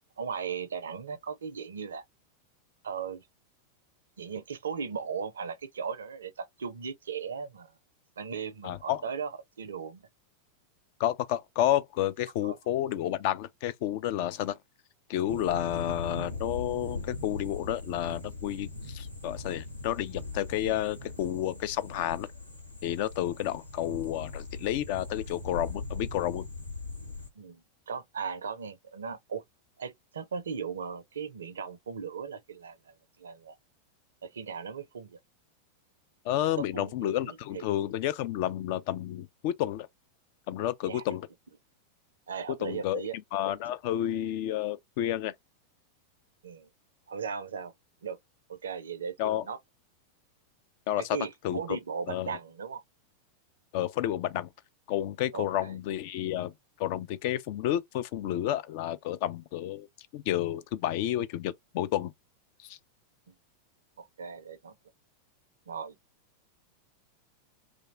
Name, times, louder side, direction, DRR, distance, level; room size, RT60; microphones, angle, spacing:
voice 1, 0.2-2.0 2.8-3.3 4.2-7.7 8.2-10.0 12.4-12.6 27.4-29.4 29.8-33.6 34.2-35.2 36.6-37.7 40.9-41.2 42.3-43.2 46.4-46.7 47.1-47.7 48.0-48.2 48.5-49.6 51.0-52.8 55.3-55.7 63.3-63.4 64.0-64.8 65.7-66.0, right 6 dB, 70° right, 0.4 m, -37 dB
voice 2, 8.6-9.0 11.0-14.6 15.1-22.3 22.8-26.5 36.2-39.9 40.5-41.3 42.6-43.0 43.3-45.3 49.2-49.4 50.9-51.2 51.4-51.8 52.1-52.4 53.7-54.5 54.9-56.5 56.8-59.9 60.1-62.1 62.6-62.8, left 12 dB, 45° left, 0.3 m, -30 dB
sound 1, 15.3-27.3, left 3 dB, 90° left, 0.7 m, -40 dB
2.5 x 2.1 x 2.9 m
figure-of-eight pair, 90°, 0 cm